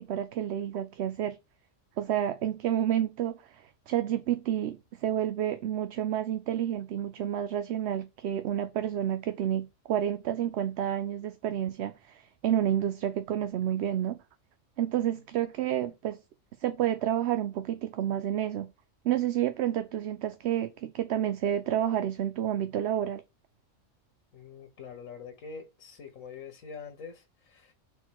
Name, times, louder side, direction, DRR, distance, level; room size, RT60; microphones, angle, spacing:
voice 1, 0.0-1.4 2.0-14.2 14.8-16.2 16.6-18.7 19.0-23.2, right 11 dB, 65° right, 0.8 m, -30 dB
voice 2, 24.3-27.7, left 5 dB, 85° left, 1.5 m, -45 dB
4.6 x 4.0 x 5.7 m
omnidirectional pair, 1.3 m